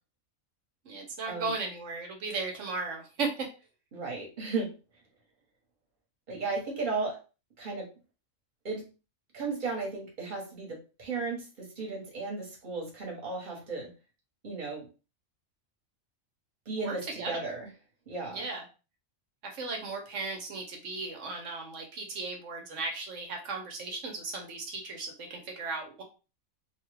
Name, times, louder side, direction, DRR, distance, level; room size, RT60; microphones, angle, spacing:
voice 1, 0.8-3.5 16.8-17.5 18.3-18.6 19.5-26.0, right 3 dB, 65° right, 2 dB, 1.1 m, -36 dB
voice 2, 3.9-4.7 6.3-7.2 7.6-7.9 8.6-8.9 9.3-13.9 14.4-14.9 16.6-17.7 18.1-18.4, right 3 dB, 40° right, -2 dB, 1.2 m, -35 dB
2.8 x 2.3 x 3.3 m, 0.32 s
omnidirectional pair, 1.4 m